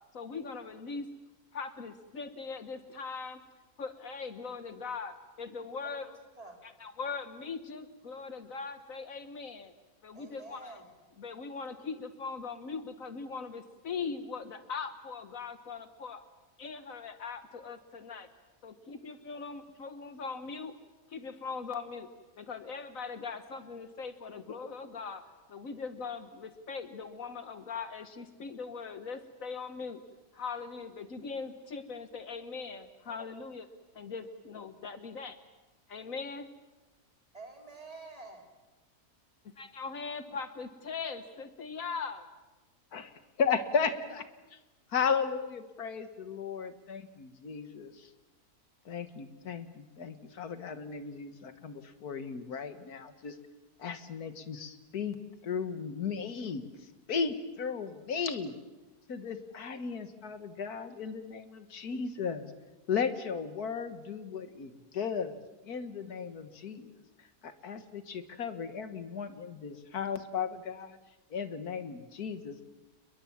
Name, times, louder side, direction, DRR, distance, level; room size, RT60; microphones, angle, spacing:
voice 1, 0.1-1.1 1.5-3.4 3.8-6.1 6.6-9.7 10.0-10.8 11.2-16.2 16.6-18.3 18.6-20.7 21.1-22.1 22.4-30.0 30.3-33.7 33.9-35.4 35.9-36.5 39.6-42.3, left 5 dB, 65° left, 10 dB, 1.6 m, -40 dB
voice 2, 5.8-6.6 10.1-10.9 37.3-38.5, right 2 dB, 25° right, 1 dB, 4.1 m, -48 dB
voice 3, 43.4-44.2 44.5-44.6 44.9-48.1 48.9-53.4 53.8-55.2 55.4-56.7 57.1-58.6 59.1-62.5 62.9-65.4 65.6-66.9 67.2-71.0 71.3-72.6, left 6 dB, 85° left, 10 dB, 2.0 m, -35 dB
29.5 x 21.5 x 7.2 m, 1.1 s
omnidirectional pair, 1.6 m